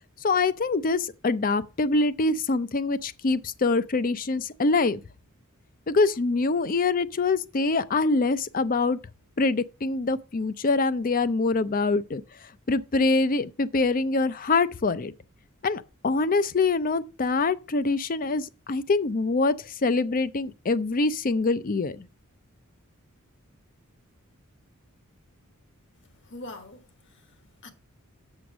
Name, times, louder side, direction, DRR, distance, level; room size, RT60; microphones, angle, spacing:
voice 1, 0.2-5.0 5.9-9.0 9.4-12.2 12.7-15.1 15.6-22.1, left 3 dB, 40° left, 0.5 m, -24 dB
voice 2, 25.9-27.7, left 2 dB, 55° left, 1.6 m, -45 dB
7.1 x 6.4 x 6.1 m
head